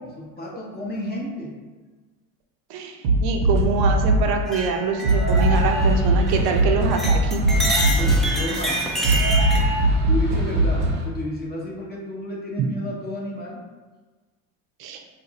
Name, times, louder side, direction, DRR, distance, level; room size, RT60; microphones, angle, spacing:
voice 1, 0.2-1.6 7.8-9.3 9.8-13.6, left 1 dB, 20° left, -3 dB, 0.7 m, -32 dB
voice 2, 2.7-7.4 14.8-15.0, right 5 dB, 60° right, 4 dB, 0.6 m, -25 dB
sound 1, 3.0-4.3 5.0-11.0, right 1 dB, 85° right, 0.9 m, -20 dB
sound 2, 4.5-6.6 6.9-9.6, right 1 dB, ahead, 0.3 m, -28 dB
2.6 x 2.5 x 3.9 m, 1.3 s
supercardioid pair, 105°, 43 cm